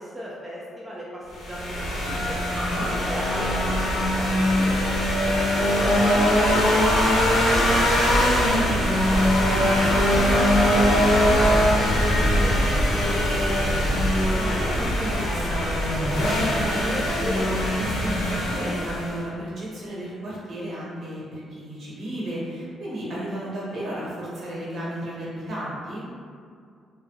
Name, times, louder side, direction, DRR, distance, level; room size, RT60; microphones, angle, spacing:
voice 1, 0.0-2.4 3.0-3.8 4.1-9.3 9.8-13.7, equal, 10° right, -7 dB, 0.4 m, -36 dB
sound 1, 1.3-19.2, equal, 85° left, 0.6 m, -21 dB
voice 2, 2.6-2.9 9.5-9.8 14.3-26.0, right 1 dB, 60° right, -8 dB, 1.1 m, -33 dB
2.1 x 2.0 x 3.3 m, 2.2 s
cardioid pair, 90°, 0 cm